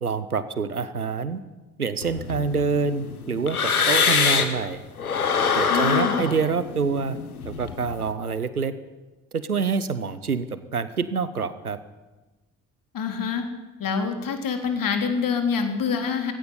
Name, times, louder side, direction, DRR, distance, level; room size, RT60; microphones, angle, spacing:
voice 1, 0.0-1.4 1.8-3.6 3.9-4.8 5.5-7.2 7.5-8.7 9.3-10.5 10.7-11.8, right 5 dB, 90° right, 14 dB, 0.8 m, -26 dB
sound 1, 2.0-4.7 5.0-8.0, left 6 dB, 85° left, 1.4 m, -24 dB
voice 2, 5.7-6.3 12.9-13.5 13.8-16.3, left 6 dB, 50° left, 6 dB, 3.5 m, -26 dB
17.5 x 16.5 x 9.7 m, 1.1 s
figure-of-eight pair, 45°, 43 cm